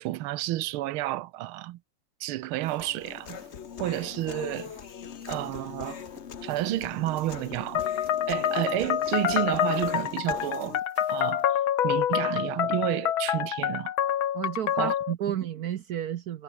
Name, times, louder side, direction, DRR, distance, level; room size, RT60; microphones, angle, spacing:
voice 1, 0.0-1.8 2.2-3.4 3.8-4.7 5.3-6.0 6.4-7.8 8.3-10.8 11.1-11.4 11.8-13.9 14.8-14.9 15.3-15.4, right 16 dB, 90° right, 1.6 m, -30 dB
sound 1, 2.6-11.5, right 3 dB, 45° right, 5.3 m, -55 dB
Human voice, 2.8-10.8, left 7 dB, 45° left, 1.0 m, -41 dB
sound 2, 7.8-15.1, left 10 dB, 75° left, 2.0 m, -27 dB
voice 2, 14.3-16.4, right 10 dB, 60° right, 1.0 m, -32 dB
omnidirectional pair, 2.3 m